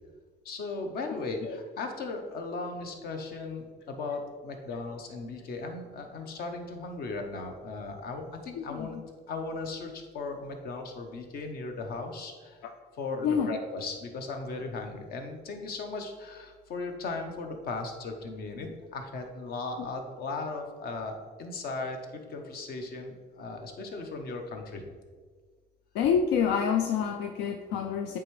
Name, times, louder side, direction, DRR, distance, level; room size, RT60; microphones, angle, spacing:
voice 1, 0.4-9.0 9.3-12.6 13.0-24.8, left 3 dB, 65° left, 4 dB, 0.9 m, -37 dB
voice 2, 8.5-9.0 13.2-13.6 19.8-19.9 25.9-28.2, left 7 dB, 85° left, 5 dB, 0.4 m, -28 dB
8.7 x 3.5 x 3.2 m, 1.5 s
cardioid pair, 110°, 17 cm